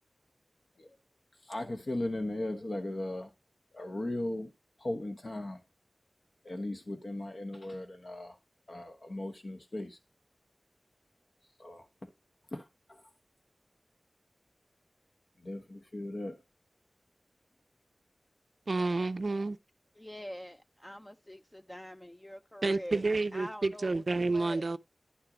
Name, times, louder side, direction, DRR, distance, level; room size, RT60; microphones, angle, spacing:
voice 1, 1.4-3.3 3.7-4.5 4.8-5.6 6.4-8.4 8.7-10.0 11.6-12.1 12.5-13.0 15.4-16.4, left 1 dB, 65° left, 1.2 m, -37 dB
voice 2, 18.7-19.6 22.6-24.8, right 3 dB, 65° right, 0.4 m, -30 dB
voice 3, 20.0-23.0 23.3-24.7, equal, 15° left, 0.5 m, -45 dB
10.5 x 4.5 x 5.0 m
wide cardioid pair, 50°, 0 cm